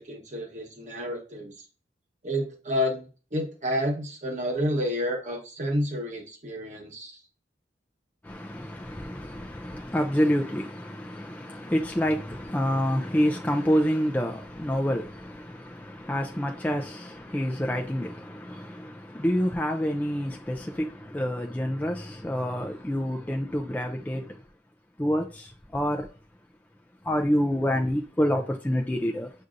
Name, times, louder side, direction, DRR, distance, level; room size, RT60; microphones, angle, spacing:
voice 1, 0.0-1.5 2.2-7.2, equal, 45° right, 1.1 m, -30 dB
voice 2, 8.2-24.4 25.0-26.1 27.0-29.3, equal, 10° left, 0.4 m, -28 dB
6.5 x 2.6 x 2.5 m
head